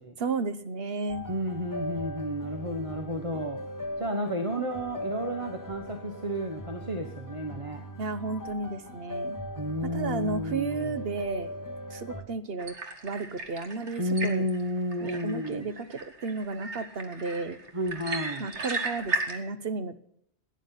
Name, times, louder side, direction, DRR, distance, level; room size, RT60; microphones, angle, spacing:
voice 1, 0.2-1.2 8.0-9.4 9.8-11.5 11.9-12.7 13.0-14.5 15.0-17.6 18.4-19.9, right 3 dB, 60° right, 12 dB, 1.2 m, -33 dB
sound 1, 1.1-12.2, equal, 15° left, 1.5 m, -39 dB
voice 2, 1.3-3.6 4.0-7.8 9.6-10.9 14.0-15.7 17.7-18.5, equal, 30° right, 5 dB, 1.3 m, -32 dB
sound 2, 12.6-19.4, right 3 dB, 85° right, 2.2 m, -36 dB
17.0 x 10.0 x 5.8 m, 0.72 s
omnidirectional pair, 1.1 m